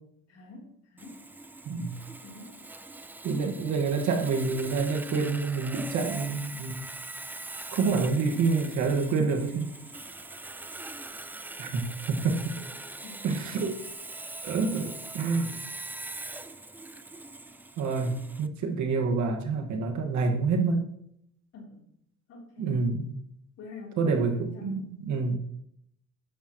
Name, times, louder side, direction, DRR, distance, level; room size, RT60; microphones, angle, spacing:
voice 1, 0.3-1.3 2.2-2.6 13.0-13.4 21.5-21.9 22.3-22.9 23.6-24.9, left 3 dB, 55° left, -1 dB, 3.6 m, -46 dB
Sawing, 1.0-18.5, right 2 dB, 5° right, 0.3 m, -42 dB
voice 2, 3.2-6.8 7.7-9.7 11.6-12.5 13.2-13.8 14.4-15.6 17.8-20.9 22.6-23.1 24.0-25.4, right 4 dB, 70° right, 3 dB, 1.9 m, -27 dB
13.0 x 10.5 x 3.1 m, 0.75 s
cardioid pair, 165°, 30 cm